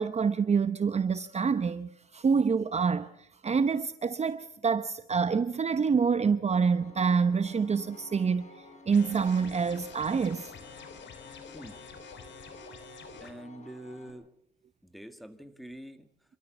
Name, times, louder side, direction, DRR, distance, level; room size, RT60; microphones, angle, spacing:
voice 1, 0.0-10.5, right 5 dB, 35° right, 0.8 m, -27 dB
Piano, 6.5-14.1, left 1 dB, 35° left, 5.5 m, -52 dB
sound 1, 8.9-13.3, left 6 dB, 65° left, 3.5 m, -48 dB
voice 2, 11.5-11.9 13.2-14.3 14.8-16.1, right 1 dB, ahead, 1.9 m, -45 dB
28.0 x 13.5 x 7.2 m
cardioid pair, 90°, 20 cm